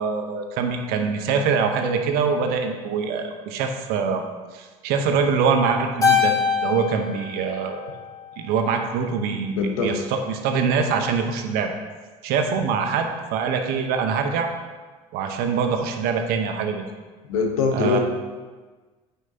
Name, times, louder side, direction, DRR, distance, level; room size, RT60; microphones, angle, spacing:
voice 1, 0.0-4.2 4.5-6.3 6.6-7.8 8.4-11.7 12.2-14.5 15.1-16.8 17.7-18.0, right 5 dB, 65° right, 5 dB, 1.0 m, -24 dB
Keyboard (musical), 6.0-8.5, left 6 dB, 20° left, 2.0 m, -24 dB
voice 2, 9.5-9.9 17.3-18.0, left 4 dB, 85° left, 3 dB, 1.0 m, -22 dB
9.2 x 5.6 x 2.9 m, 1.4 s
hypercardioid pair, 70°, 17 cm